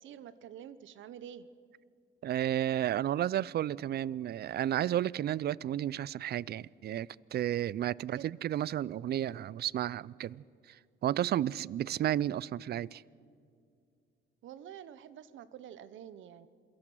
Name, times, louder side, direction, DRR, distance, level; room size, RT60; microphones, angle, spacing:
voice 1, 0.0-1.5 8.1-8.2 14.4-16.5, right 10 dB, 75° right, 0.9 m, -48 dB
voice 2, 2.2-13.0, right 11 dB, 55° right, 0.4 m, -32 dB
27.5 x 17.5 x 6.2 m
cardioid pair, 90°, 20 cm